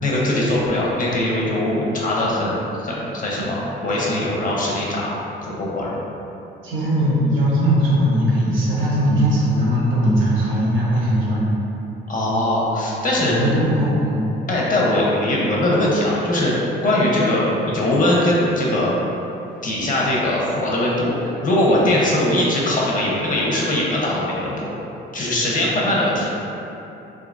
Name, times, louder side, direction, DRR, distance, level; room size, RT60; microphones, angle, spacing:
voice 1, 0.0-5.1 5.6-5.9 12.1-13.3 14.5-16.5 16.8-18.9 19.6-21.1 21.4-24.7 25.1-26.3, left 1 dB, 40° left, -5 dB, 0.9 m, -21 dB
voice 2, 6.6-11.5 13.3-14.3, equal, 80° right, -7 dB, 1.1 m, -19 dB
3.7 x 2.9 x 2.5 m, 2.9 s
cardioid pair, 90°, 20 cm